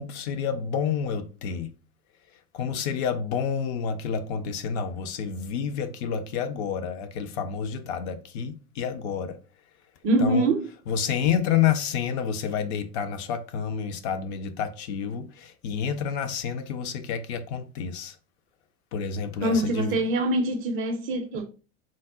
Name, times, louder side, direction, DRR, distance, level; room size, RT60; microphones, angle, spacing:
voice 1, 0.0-1.7 2.5-9.4 10.2-10.5 10.9-18.1 18.9-20.0, left 7 dB, 45° left, 0.4 m, -29 dB
voice 2, 10.0-10.7 19.4-21.5, right 1 dB, 30° right, 0.4 m, -24 dB
3.7 x 2.1 x 3.6 m
figure-of-eight pair, 85°, 47 cm